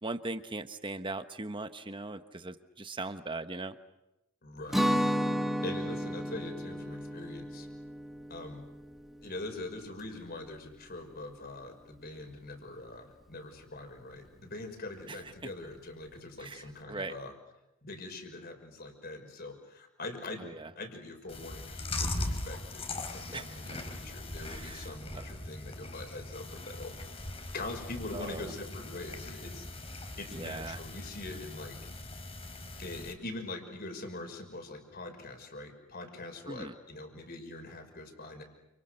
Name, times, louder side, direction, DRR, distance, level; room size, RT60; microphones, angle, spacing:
voice 1, 0.0-3.7 15.1-15.2 16.4-17.1 20.4-20.7 23.3-23.6 24.4-24.9 25.1-25.2 28.1-28.5 30.3-30.8 36.5-36.7, right 2 dB, 25° right, 9 dB, 1.2 m, -39 dB
voice 2, 4.4-4.9 5.6-7.7 8.3-8.6 9.2-17.3 17.8-20.5 20.8-27.0 27.5-31.8 32.8-38.4, left 2 dB, 45° left, 5 dB, 5.9 m, -43 dB
Guitar, 4.7-10.5, equal, ahead, 2.5 m, -33 dB
Chewing mastication, 21.3-33.1, left 2 dB, 30° left, 3.3 m, -40 dB
29.5 x 29.0 x 6.6 m, 0.92 s
head